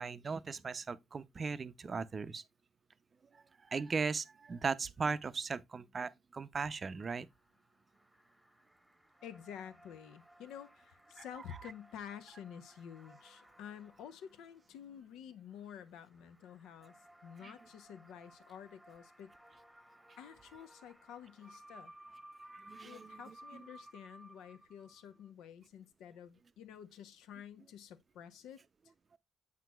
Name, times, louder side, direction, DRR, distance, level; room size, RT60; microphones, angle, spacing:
voice 1, 0.0-2.4 3.3-7.3 11.2-11.3 17.4-17.5 22.5-23.6, right 5 dB, 40° right, 0.5 m, -38 dB
sound 1, 7.2-15.0 15.5-25.3, right 1 dB, 5° right, 1.0 m, -59 dB
voice 2, 9.2-17.0 17.2-19.3 20.2-21.9 22.8-28.6, left 8 dB, 90° left, 0.6 m, -50 dB
7.4 x 5.9 x 2.2 m
cardioid pair, 90°, 0 cm